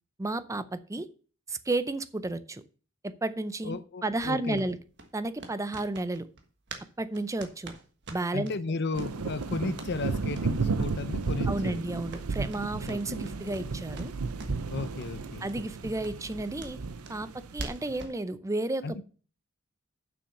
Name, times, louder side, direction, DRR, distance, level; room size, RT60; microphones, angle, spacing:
voice 1, 0.2-1.1 1.5-2.6 3.0-3.8 4.0-4.8 5.1-6.3 7.0-7.7 8.1-8.5 11.5-14.1 15.4-16.8 17.1-19.0, right 2 dB, 15° right, 0.5 m, -32 dB
voice 2, 3.6-4.6 8.3-11.8 12.9-13.2 14.7-15.5 18.8-19.0, left 3 dB, 50° left, 0.7 m, -34 dB
sound 1, 4.2-6.9 7.1-8.5 8.9-9.1 9.4-9.9 10.3-10.5 10.8-10.9 11.2-11.3 11.6-13.7 13.9-14.7 15.0-15.1 15.5-15.6 16.0-18.2, right 2 dB, 50° right, 1.4 m, -44 dB
sound 2, 8.9-18.0, right 4 dB, 80° right, 0.7 m, -33 dB
7.1 x 6.1 x 6.6 m
head